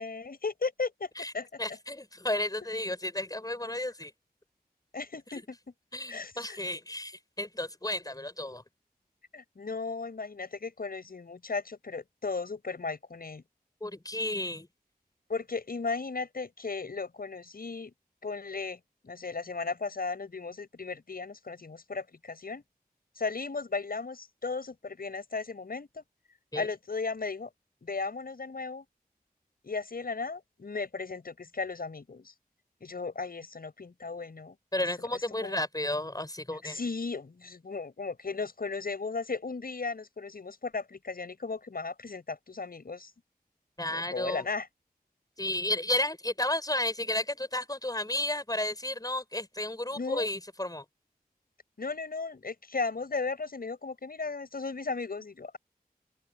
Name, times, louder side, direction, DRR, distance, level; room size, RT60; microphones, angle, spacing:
voice 1, 0.0-1.1 1.3-1.6 4.9-5.6 6.1-6.6 9.3-13.4 15.3-17.9 18.2-18.8 19.0-22.6 23.2-26.0 26.6-27.5 27.8-28.8 29.6-32.3 32.8-34.6 35.4-35.6 36.6-43.1 43.9-44.7 50.0-50.3 51.8-55.6, left 4 dB, 70° left, 7.7 m, -36 dB
voice 2, 1.6-4.1 5.3-5.4 5.9-8.6 13.8-14.7 26.5-26.7 34.7-36.8 43.8-44.5 45.4-50.9, left 1 dB, 25° left, 5.5 m, -32 dB
wide cardioid pair, 60°, 16 cm